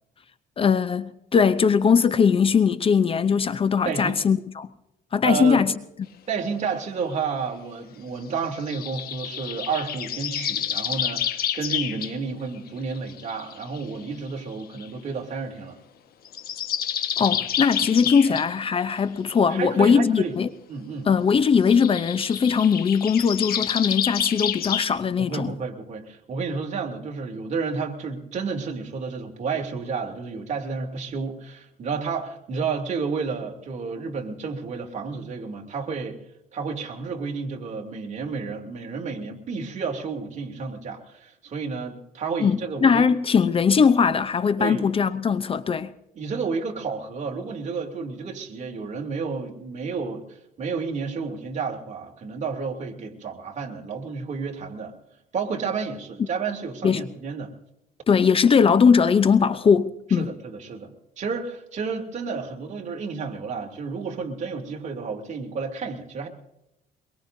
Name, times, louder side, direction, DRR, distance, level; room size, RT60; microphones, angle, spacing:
voice 1, 0.6-4.7 5.1-5.7 17.2-20.5 21.1-25.5 42.4-45.9 56.8-57.0 58.1-60.3, left 6 dB, 35° left, 0.7 m, -20 dB
voice 2, 3.8-4.2 5.2-5.6 6.3-15.8 17.3-17.4 18.3-18.4 19.5-20.4 20.7-21.1 25.2-36.2 36.5-43.0 44.6-44.9 46.1-55.0 55.3-57.5 60.1-66.3, right 5 dB, 45° right, 2.9 m, -31 dB
sound 1, 8.7-12.1 12.7-13.8 14.8-14.9 16.3-18.5 21.7-24.9, left 10 dB, 65° left, 1.4 m, -29 dB
23.5 x 22.5 x 2.7 m
cardioid pair, 110°, 17 cm